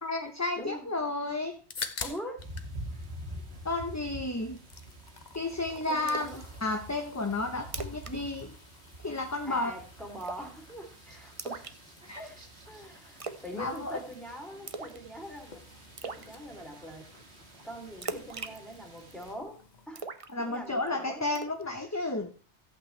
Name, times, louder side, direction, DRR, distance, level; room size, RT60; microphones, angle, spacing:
voice 1, 0.0-1.6 3.6-4.6 5.3-6.3 6.6-8.5 9.0-9.7 12.0-12.2 13.5-14.0 20.3-22.3, left 2 dB, 15° left, 4 dB, 0.9 m, -32 dB
voice 2, 0.6-0.9 2.0-2.4 5.9-6.4 9.4-11.8 12.1-13.2 13.4-15.6 16.0-17.1 17.6-19.6 19.9-20.1 20.4-21.4, equal, ahead, -1 dB, 3.0 m, -43 dB
sound 1, 1.4-2.7 3.0-4.0 4.4-19.9, left 5 dB, 45° left, 1.0 m, -48 dB
sound 2, 2.4-19.3, equal, 75° right, 2.2 m, -47 dB
Splash splatter, 6.1-6.4 6.8-6.9 7.3-7.4 7.7-8.1 8.4-8.6 8.9-9.3 10.2-10.6 11.4-12.3 13.2-13.5 13.8-14.1 14.7-15.1 15.4-15.5 16.0-16.3 18.0-19.3 20.0-20.9 21.4-21.6, right 4 dB, 35° right, 0.7 m, -39 dB
15.0 x 8.4 x 3.3 m, 0.38 s
omnidirectional pair, 1.1 m